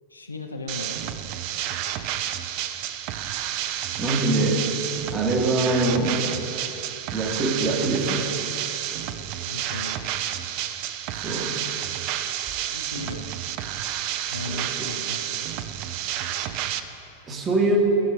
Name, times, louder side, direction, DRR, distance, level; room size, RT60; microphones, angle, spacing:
voice 1, 0.1-1.4 9.5-9.9 12.5-13.3 14.3-15.5, left 2 dB, 80° left, 4 dB, 0.7 m, -37 dB
sound 1, 0.7-16.8, right 11 dB, 45° right, 0.4 m, -30 dB
voice 2, 4.0-4.7 5.1-6.2 7.1-8.3 11.1-11.6 14.4-14.9 17.3-17.8, right 2 dB, 25° right, 1 dB, 1.4 m, -24 dB
15.0 x 6.6 x 3.4 m, 3.0 s
figure-of-eight pair, 90°, 0 cm